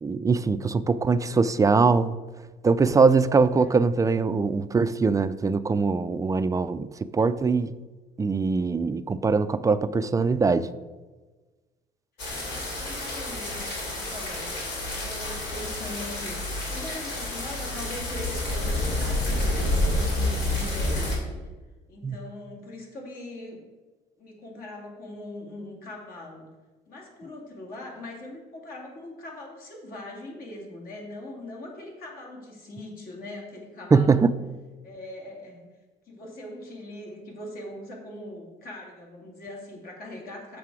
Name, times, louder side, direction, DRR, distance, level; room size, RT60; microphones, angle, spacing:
voice 1, 0.0-2.2 2.6-7.7 8.2-10.7 22.0-22.2 33.9-34.3, right 4 dB, 20° right, 13 dB, 0.3 m, -22 dB
sound 1, 12.2-21.2, left 1 dB, 80° left, 2.8 m, -29 dB
voice 2, 12.3-21.4 21.9-23.6 24.2-26.5 26.9-34.3 34.8-35.7 36.1-40.6, left 1 dB, 60° left, -1 dB, 2.6 m, -41 dB
7.3 x 6.7 x 4.8 m, 1.2 s
cardioid pair, 110°, 17 cm